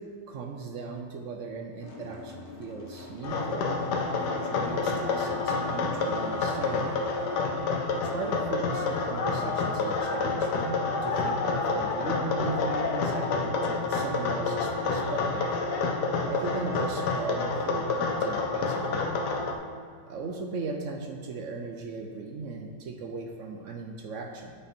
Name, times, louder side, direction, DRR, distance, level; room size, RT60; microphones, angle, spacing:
voice 1, 0.0-3.7 4.0-7.0 7.9-15.5 16.2-19.0 20.1-24.5, right 3 dB, 60° right, 3 dB, 0.9 m, -38 dB
sound 1, 1.8-19.7, left 2 dB, 45° left, 0.9 m, -47 dB
sound 2, 3.2-19.5, left 4 dB, 80° left, 1.3 m, -28 dB
7.9 x 5.6 x 4.4 m, 2.1 s
omnidirectional pair, 1.8 m